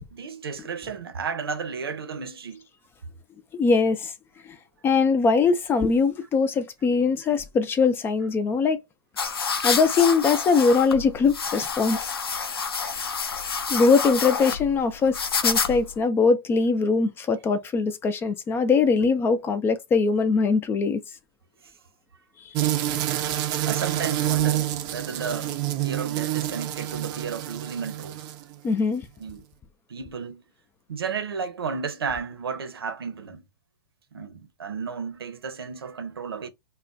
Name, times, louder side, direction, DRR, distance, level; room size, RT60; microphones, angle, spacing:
voice 1, 0.1-2.6 12.6-13.0 21.6-21.7 23.7-28.3 29.2-29.4 29.9-30.4 30.9-33.5 34.1-36.5, right 6 dB, 85° right, 0.8 m, -33 dB
voice 2, 3.5-4.1 4.8-8.8 9.6-12.1 13.7-15.2 15.4-21.0 28.6-29.0, left 4 dB, 20° left, 0.4 m, -21 dB
sound 1, 9.2-16.0, left 5 dB, 90° left, 0.6 m, -28 dB
sound 2, 22.5-28.6, right 13 dB, 35° right, 0.5 m, -27 dB
2.4 x 2.2 x 3.9 m
hypercardioid pair, 120°, 12 cm